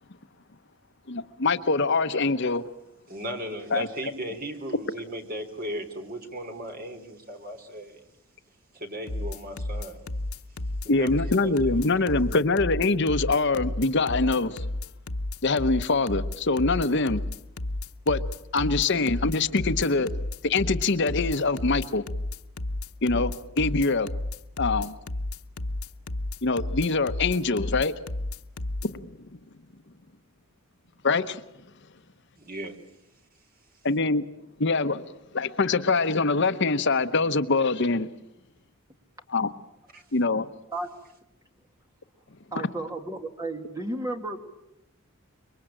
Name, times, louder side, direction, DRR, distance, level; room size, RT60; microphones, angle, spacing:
voice 1, 1.1-2.6 3.7-3.9 10.9-14.6 15.4-17.2 18.1-18.2 18.5-20.1 20.4-22.0 23.0-24.1 24.6-25.0 26.4-27.9 28.8-29.1 31.0-31.4 33.8-34.2 34.6-35.0 35.3-38.1 39.3-39.5 40.1-40.5, left 3 dB, 55° left, 0.9 m, -24 dB
voice 2, 3.1-8.0 8.7-10.0 10.8-12.1 32.4-32.7 39.9-40.0, right 1 dB, 40° right, 3.5 m, -37 dB
sound 1, 9.1-28.9, left 1 dB, 85° left, 1.0 m, -32 dB
voice 3, 42.5-44.4, right 2 dB, 15° right, 2.4 m, -33 dB
27.0 x 23.0 x 9.0 m
head